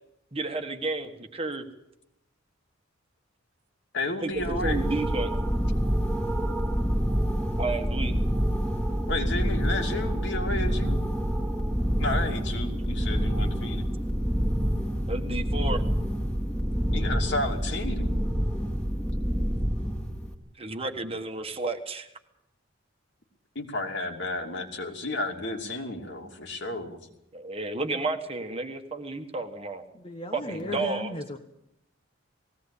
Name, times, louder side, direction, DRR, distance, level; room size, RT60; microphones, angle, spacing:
voice 1, 0.3-1.7 4.2-5.3 7.5-8.2 15.1-15.8 20.5-22.1 27.3-29.8 30.3-31.2, right 3 dB, 30° right, 5 dB, 1.5 m, -32 dB
voice 2, 3.9-4.9 9.1-11.0 12.0-13.9 16.9-18.1 23.5-27.0 30.6-30.8, left 2 dB, 60° left, 3 dB, 2.8 m, -32 dB
sound 1, 4.3-20.3, equal, 5° left, 2.3 m, -27 dB
voice 3, 29.9-31.4, left 2 dB, 30° left, 4 dB, 1.2 m, -36 dB
19.5 x 16.5 x 8.5 m, 0.81 s
head